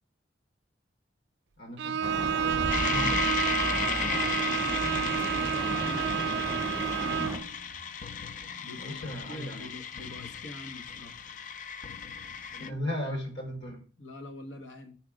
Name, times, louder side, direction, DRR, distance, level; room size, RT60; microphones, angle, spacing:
voice 1, 1.6-3.3 8.8-9.7 12.6-13.8, left 1 dB, 70° left, 3 dB, 1.7 m, -37 dB
Bowed string instrument, 1.8-7.5, right 8 dB, 70° right, 0.4 m, -30 dB
sound 1, 2.0-7.4, right 1 dB, 15° right, 0.6 m, -35 dB
sound 2, 2.7-12.7, left 7 dB, 45° left, 0.3 m, -35 dB
voice 2, 5.3-6.9 8.6-11.2 12.5-12.8 13.0-13.1 14.0-15.0, left 1 dB, 90° left, 5 dB, 0.8 m, -46 dB
4.9 x 4.4 x 4.9 m, 0.41 s
head